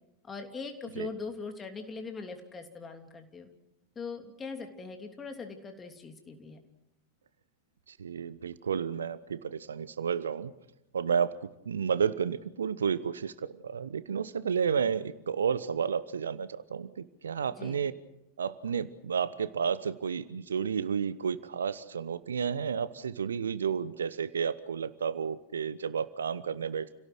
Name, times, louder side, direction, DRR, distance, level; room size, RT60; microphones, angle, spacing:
voice 1, 0.2-3.5 3.9-6.6 17.5-17.9, left 4 dB, 20° left, 5 dB, 3.1 m, -41 dB
voice 2, 7.9-10.5 10.9-11.3 11.6-17.9 18.4-27.0, right 7 dB, 70° right, 15 dB, 1.0 m, -31 dB
30.0 x 17.5 x 6.3 m, 0.86 s
figure-of-eight pair, 90°, 0 cm